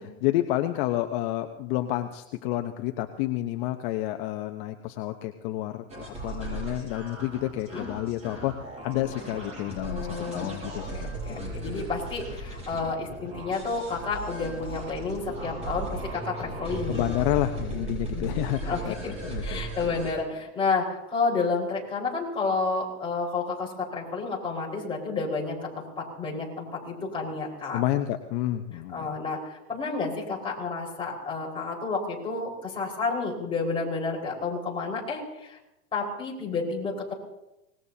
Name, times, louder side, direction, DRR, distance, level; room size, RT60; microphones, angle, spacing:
voice 1, 0.2-11.5 16.9-19.6 27.7-29.1, left 14 dB, 50° left, 6 dB, 0.9 m, -30 dB
sound 1, 5.9-20.1, right 2 dB, 20° right, 6.4 m, -36 dB
voice 2, 9.9-10.6 10.9-17.0 18.1-19.1 19.4-27.8 28.9-35.6 35.9-37.1, left 4 dB, 15° left, -3 dB, 4.8 m, -30 dB
25.0 x 20.0 x 2.8 m, 0.93 s
supercardioid pair, 145°, 36 cm